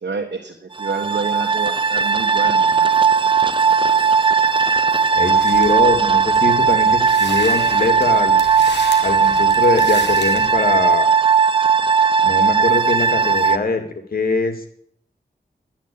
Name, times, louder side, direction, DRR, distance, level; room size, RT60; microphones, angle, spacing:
voice 1, 0.0-2.9, right 4 dB, 75° right, 2 dB, 1.5 m, -29 dB
sound 1, 0.8-13.6, right 6 dB, 30° right, 0.7 m, -17 dB
voice 2, 5.2-8.4 9.0-11.1 12.2-13.8 14.1-14.7, left 3 dB, 55° left, 6 dB, 2.4 m, -22 dB
sound 2, 5.4-10.8, left 4 dB, 75° left, 2.2 m, -35 dB
11.0 x 10.0 x 8.7 m, 0.65 s
wide cardioid pair, 105°, 18 cm